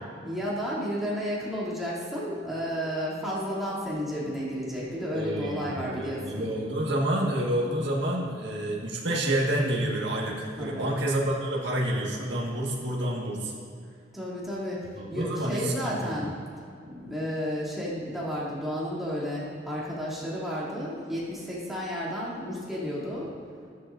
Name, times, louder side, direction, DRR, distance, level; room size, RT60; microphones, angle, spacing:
voice 1, 0.2-6.5 10.6-10.9 14.1-14.8 15.1-16.3 16.9-23.3, equal, ahead, -9 dB, 2.7 m, -32 dB
voice 2, 5.1-13.5 15.0-15.9, right 1 dB, 65° right, -3 dB, 1.6 m, -28 dB
13.5 x 11.0 x 2.6 m, 2.5 s
head